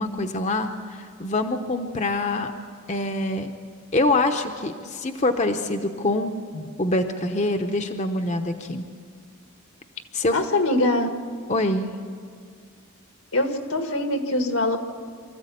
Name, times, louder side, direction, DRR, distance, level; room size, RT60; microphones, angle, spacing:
voice 1, 0.0-2.5 2.9-3.5 3.9-6.3 6.8-8.9 10.1-10.4 11.5-11.9, left 2 dB, 35° left, 5 dB, 0.8 m, -25 dB
voice 2, 10.3-11.1 13.3-14.8, left 1 dB, 80° left, 6 dB, 1.8 m, -23 dB
24.5 x 14.0 x 8.5 m, 2.1 s
head